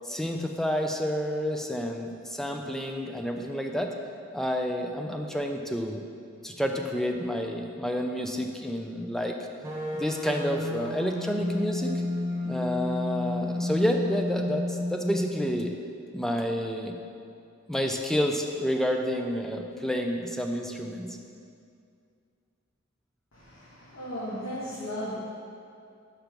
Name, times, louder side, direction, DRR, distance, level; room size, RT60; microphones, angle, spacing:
voice 1, 0.0-3.9 4.3-6.0 6.4-9.4 9.9-11.9 12.4-15.7 16.1-17.0 17.7-21.2, equal, ahead, 3 dB, 0.4 m, -29 dB
sound 1, 9.6-15.7, left 2 dB, 15° right, 1.4 m, -31 dB
voice 2, 23.3-25.1, equal, 90° left, -10 dB, 1.6 m, -36 dB
5.9 x 5.8 x 5.2 m, 2.4 s
head